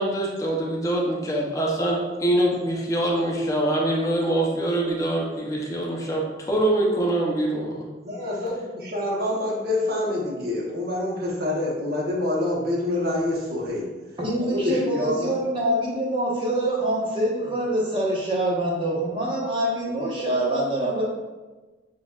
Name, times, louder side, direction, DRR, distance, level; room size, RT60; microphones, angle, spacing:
voice 1, 0.0-7.8, right 1 dB, 20° left, -3 dB, 0.7 m, -24 dB
voice 2, 8.0-13.8 14.5-15.3, left 2 dB, 60° right, -3 dB, 1.0 m, -26 dB
voice 3, 14.2-21.0, right 1 dB, 30° right, -5 dB, 1.1 m, -25 dB
7.2 x 2.5 x 2.4 m, 1.2 s
head